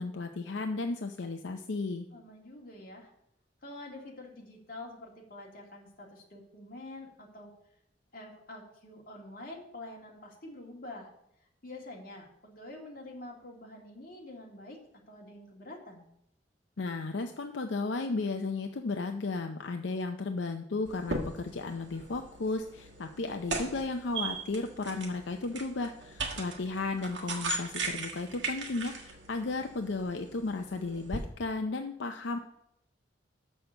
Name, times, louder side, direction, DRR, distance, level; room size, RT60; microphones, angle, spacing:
voice 1, 0.0-2.1 16.8-32.4, left 3 dB, 80° left, 5 dB, 0.6 m, -34 dB
voice 2, 2.1-3.1 3.6-7.5 8.1-11.1 11.6-14.8 15.1-16.0, left 2 dB, 50° left, -1 dB, 2.1 m, -46 dB
sound 1, 20.9-31.2, right 3 dB, 85° right, 1.6 m, -39 dB
6.5 x 6.3 x 6.8 m, 0.79 s
head